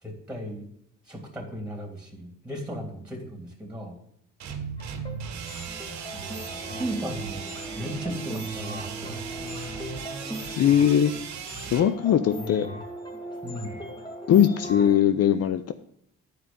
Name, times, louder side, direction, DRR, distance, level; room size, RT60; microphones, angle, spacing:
voice 1, 0.0-0.7 1.1-4.0 6.1-9.2 9.5-9.6 12.4-12.7 13.4-13.8, equal, 5° right, 0 dB, 2.9 m, -36 dB
sound 1, 4.4-11.9, right 6 dB, 65° right, 1.9 m, -37 dB
sound 2, 4.8-15.0, equal, 15° left, 2.5 m, -39 dB
voice 2, 10.6-11.1 11.7-12.7 14.3-15.7, left 9 dB, 55° left, 11 dB, 0.6 m, -20 dB
9.4 x 5.1 x 7.1 m, 0.73 s
cardioid pair, 90°, 30 cm